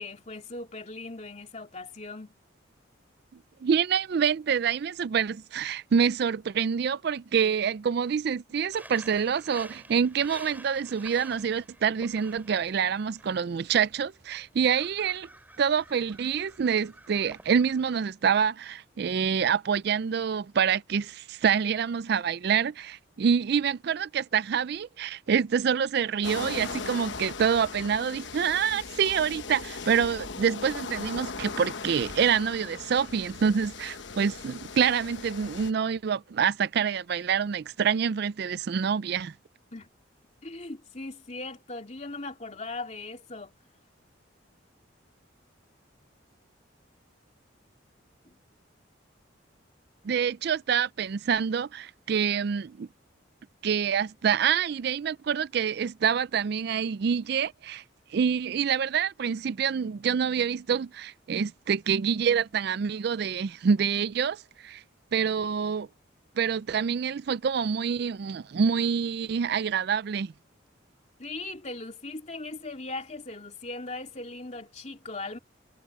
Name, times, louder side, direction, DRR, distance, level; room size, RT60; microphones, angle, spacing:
voice 1, 0.0-2.3 39.7-39.9 40.4-43.5 48.2-48.4 71.2-75.4, left 2 dB, 35° left, 2.8 m, -39 dB
voice 2, 3.6-15.3 15.6-39.3 50.0-52.9 53.6-57.8 58.1-64.8 65.1-65.9 66.4-70.3, right 7 dB, 55° right, 0.4 m, -26 dB
sound 1, 8.7-18.0, right 1 dB, 10° right, 5.4 m, -50 dB
sound 2, 26.2-35.7, left 4 dB, 65° left, 1.1 m, -39 dB
head